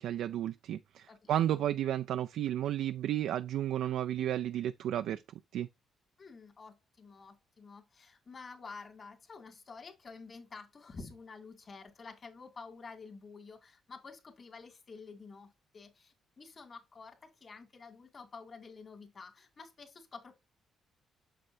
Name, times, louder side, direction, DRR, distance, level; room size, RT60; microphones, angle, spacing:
voice 1, 0.0-5.2 5.5-5.7, right 11 dB, 80° right, 0.3 m, -32 dB
voice 2, 1.1-1.6 6.2-20.3, left 4 dB, 40° left, 2.4 m, -50 dB
7.5 x 6.7 x 2.7 m
cardioid pair, 90°, 0 cm